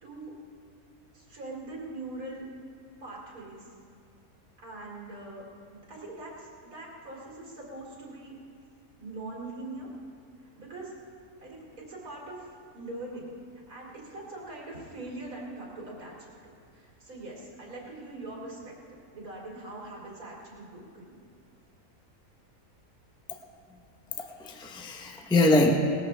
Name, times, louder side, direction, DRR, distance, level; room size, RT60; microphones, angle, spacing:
voice 1, 0.0-0.3 1.1-2.5 3.0-3.7 4.6-8.4 9.0-9.9 10.6-10.9 11.4-12.5 12.7-13.3 13.7-16.3 16.7-18.7 19.1-21.2, right 2 dB, 70° right, -3 dB, 3.1 m, -42 dB
voice 2, 24.2-25.8, left 2 dB, 5° left, 2 dB, 0.7 m, -24 dB
19.5 x 13.5 x 3.4 m, 2.4 s
omnidirectional pair, 1.6 m